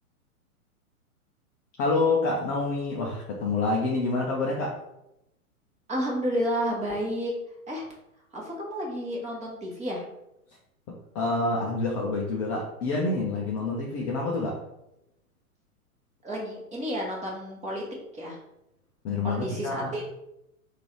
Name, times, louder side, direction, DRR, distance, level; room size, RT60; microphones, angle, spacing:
voice 1, 1.8-4.8 11.1-14.6 19.0-20.0, left 3 dB, 25° left, -2 dB, 0.5 m, -27 dB
voice 2, 5.9-7.3 7.7-7.8 8.3-10.0 16.2-17.8 18.1-18.4 19.2-20.0, equal, 15° right, -3 dB, 1.2 m, -31 dB
3.8 x 2.7 x 4.4 m, 0.86 s
figure-of-eight pair, 115°, 44 cm